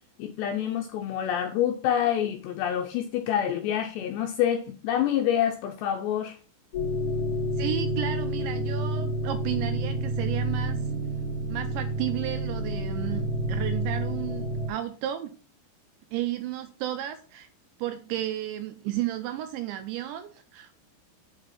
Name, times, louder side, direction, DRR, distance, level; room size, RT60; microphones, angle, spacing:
voice 1, 0.2-6.4, left 10 dB, 85° left, 4 dB, 2.5 m, -27 dB
sound 1, 6.7-14.7, right 1 dB, 60° left, 1.6 m, -29 dB
voice 2, 7.6-10.8 11.5-15.3 16.1-17.5 17.8-20.7, right 12 dB, 85° right, 8 dB, 2.7 m, -33 dB
7.7 x 5.5 x 5.5 m, 0.39 s
omnidirectional pair, 5.8 m